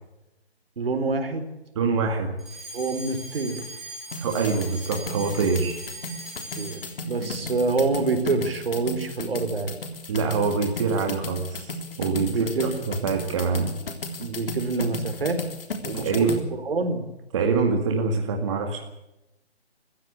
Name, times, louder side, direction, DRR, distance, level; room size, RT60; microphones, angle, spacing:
voice 1, 0.8-1.5 2.7-3.7 6.6-9.8 12.3-12.8 14.2-15.5 15.8-16.3 16.6-17.0, right 3 dB, 60° right, 8 dB, 4.1 m, -26 dB
voice 2, 1.8-2.4 4.2-5.8 7.2-7.3 10.1-12.5 12.9-13.7 15.9-16.4 17.3-18.8, right 4 dB, 25° right, 2 dB, 2.1 m, -25 dB
Alarm, 2.4-7.0, right 1 dB, ahead, 5.8 m, -40 dB
sound 1, 4.1-16.4, left 2 dB, 55° left, 3.7 m, -35 dB
24.5 x 15.5 x 8.5 m, 0.93 s
hypercardioid pair, 165°, 33 cm